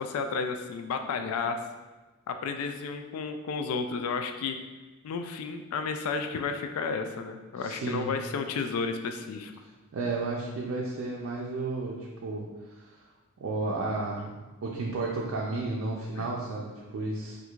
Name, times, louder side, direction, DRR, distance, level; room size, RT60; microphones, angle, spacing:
voice 1, 0.0-1.6 2.3-4.6 5.0-9.5 16.2-16.3, left 5 dB, 85° left, 7 dB, 0.3 m, -32 dB
voice 2, 7.6-8.1 9.9-13.0 13.4-14.3 14.6-17.4, right 3 dB, 70° right, -3 dB, 0.4 m, -32 dB
4.4 x 2.5 x 2.3 m, 1.2 s
head